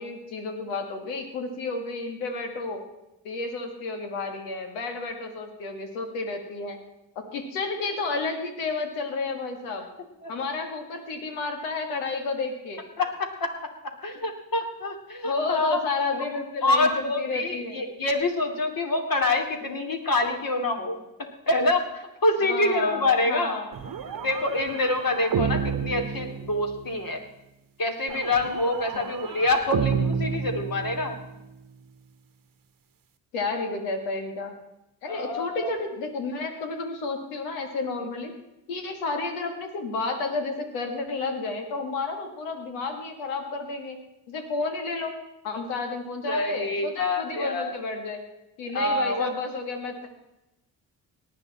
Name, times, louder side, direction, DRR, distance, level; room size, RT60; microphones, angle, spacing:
voice 1, 0.0-2.8 3.2-6.8 7.2-9.9 10.3-12.8 15.2-17.8 22.4-24.0 25.3-25.6 28.9-29.1 33.3-34.5 35.0-38.3 38.7-44.0 44.3-45.1 45.4-48.2 48.6-50.1, left 3 dB, 85° left, 5 dB, 2.0 m, -31 dB
voice 2, 13.0-13.5 13.8-15.8 16.1-16.3 16.6-21.0 21.5-23.6 24.1-27.2 27.8-31.2 35.0-35.7 46.3-47.7 48.7-49.3, left 2 dB, 45° left, 4 dB, 3.0 m, -26 dB
sound 1, 23.7-27.0 28.1-31.3, right 7 dB, 40° right, 1.1 m, -31 dB
18.5 x 9.9 x 4.2 m, 0.91 s
hypercardioid pair, 50°, 49 cm